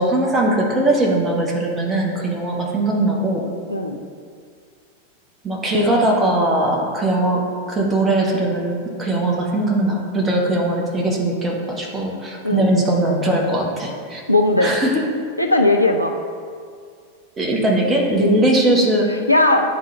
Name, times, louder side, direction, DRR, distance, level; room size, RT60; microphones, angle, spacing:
voice 1, 0.0-3.5 5.4-14.2 14.6-15.1 17.4-19.2, right 1 dB, 15° right, -2 dB, 1.2 m, -20 dB
voice 2, 14.3-14.8 15.4-16.1 19.3-19.7, left 2 dB, 90° left, 2 dB, 0.5 m, -17 dB
10.0 x 3.8 x 3.3 m, 2.1 s
figure-of-eight pair, 90°, 0 cm